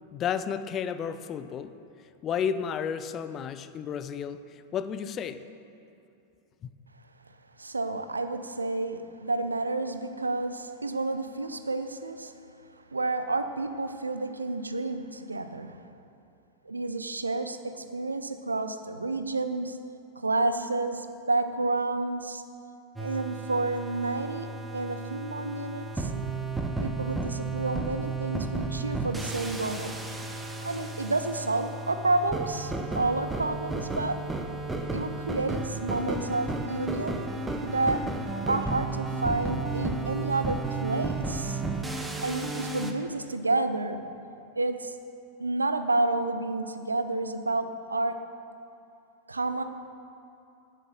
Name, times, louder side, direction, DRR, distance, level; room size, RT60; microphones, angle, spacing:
voice 1, 0.1-1.7 2.2-5.4 6.6-6.7, left 7 dB, 30° left, 12 dB, 0.5 m, -32 dB
voice 2, 7.6-12.3 12.9-15.8 16.6-19.8 20.2-22.4 23.0-26.1 26.8-29.9 30.6-34.2 34.9-37.2 37.6-38.0 38.5-41.6 42.2-44.0 44.6-44.9 45.4-48.2 49.3-49.6, right 2 dB, 80° right, 9 dB, 0.5 m, -30 dB
sound 1, 23.0-42.9, right 3 dB, 10° right, 0.8 m, -33 dB
11.0 x 6.6 x 6.5 m, 2.7 s
figure-of-eight pair, 90°, 0 cm